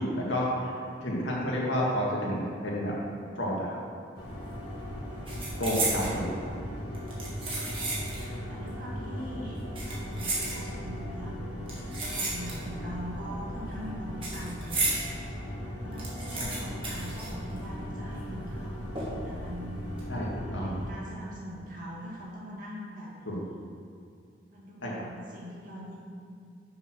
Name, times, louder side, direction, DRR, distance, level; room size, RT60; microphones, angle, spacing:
voice 1, 0.0-2.9 3.3-3.8 5.6-6.3 16.6-16.7 20.1-20.7 23.3-23.4 24.8-24.9, equal, 90° left, -4 dB, 2.0 m, -30 dB
sound 1, 4.2-20.9, equal, 65° left, 1.6 m, -38 dB
sound 2, 4.2-4.5 4.8-6.2 6.9-8.3 8.6-8.7 9.6-11.0 11.7-12.9 13.1-15.1 15.5-15.6 15.8-17.9 18.2-18.3 19.0-19.4 19.8-20.0, right 2 dB, 30° right, 1.8 m, -34 dB
voice 2, 8.2-9.6 9.9-14.8 15.5-18.9 19.2-20.0 20.3-23.6 24.5-26.0, equal, 45° right, -5 dB, 2.0 m, -42 dB
6.8 x 5.9 x 6.1 m, 2.3 s
head